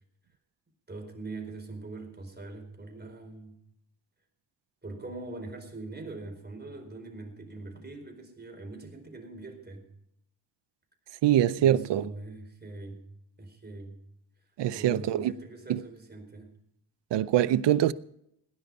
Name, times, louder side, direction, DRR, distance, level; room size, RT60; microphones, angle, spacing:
voice 1, 0.9-3.6 4.8-9.9 11.6-13.1 13.4-14.0 14.7-16.5, right 2 dB, 25° right, 4.6 m, -42 dB
voice 2, 11.2-12.1 14.6-15.3 15.7-15.8 17.1-17.9, right 11 dB, 90° right, 0.7 m, -24 dB
18.5 x 10.5 x 5.4 m
cardioid pair, 85°, 41 cm